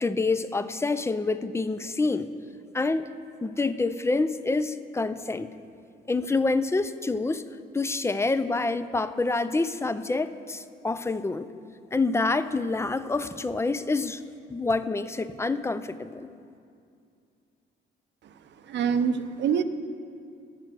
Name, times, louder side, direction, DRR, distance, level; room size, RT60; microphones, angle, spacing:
voice 1, 0.0-2.3 2.7-3.1 3.4-5.5 6.1-7.4 7.7-11.5 11.9-14.2 14.5-16.3, left 3 dB, 15° left, 13 dB, 0.4 m, -27 dB
voice 2, 18.6-19.6, right 7 dB, 65° right, 10 dB, 0.6 m, -25 dB
9.7 x 6.7 x 7.3 m, 2.4 s
cardioid pair, 90°, 20 cm